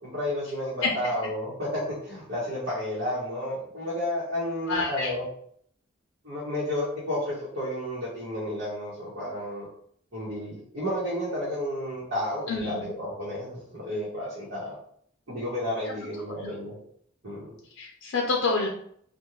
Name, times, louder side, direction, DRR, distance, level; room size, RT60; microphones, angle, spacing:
voice 1, 0.0-5.3 6.2-9.7 10.1-14.7 15.3-16.8 17.2-17.5, left 1 dB, 60° right, -9 dB, 1.1 m, -31 dB
voice 2, 4.7-5.1 12.5-12.9 16.4-16.5 17.8-18.7, left 3 dB, 80° left, -1 dB, 0.5 m, -28 dB
2.5 x 2.2 x 3.0 m, 0.64 s
head